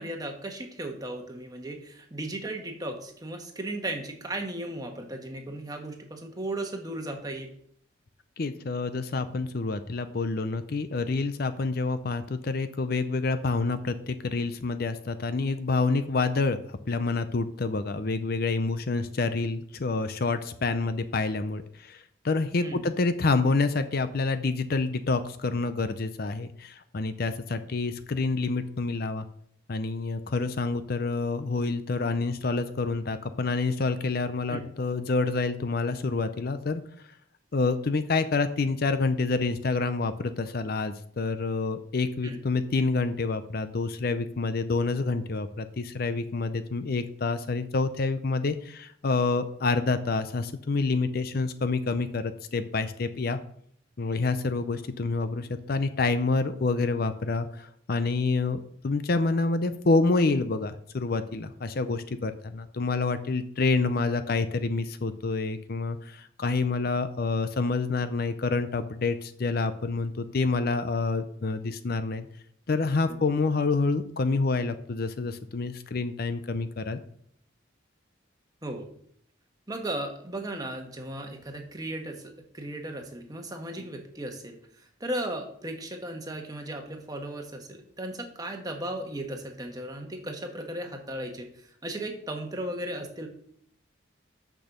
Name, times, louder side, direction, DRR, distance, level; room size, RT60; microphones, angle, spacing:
voice 1, 0.0-7.5 22.6-22.8 34.5-34.7 42.2-42.4 73.1-73.2 78.6-78.9 79.7-93.3, right 1 dB, 20° right, 3 dB, 1.2 m, -36 dB
voice 2, 8.4-29.3 29.7-36.8 37.5-53.4 54.0-72.3 72.7-77.0, left 3 dB, 50° left, 11 dB, 0.5 m, -28 dB
6.6 x 6.2 x 6.6 m, 0.65 s
head